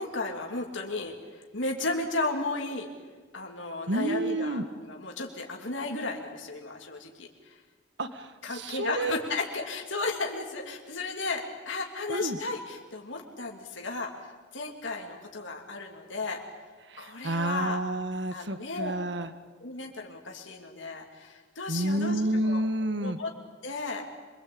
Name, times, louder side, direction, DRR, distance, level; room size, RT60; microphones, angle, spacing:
voice 1, 0.0-2.9 3.3-7.6 8.4-16.4 17.0-17.8 18.3-18.9 19.6-22.6 23.0-23.3 23.6-24.0, left 3 dB, 85° left, 1 dB, 2.9 m, -34 dB
voice 2, 3.9-4.6 8.0-9.1 12.1-12.4 16.9-19.3 21.7-23.2, right 1 dB, 70° right, 10 dB, 1.6 m, -29 dB
26.5 x 22.5 x 8.7 m, 1.4 s
head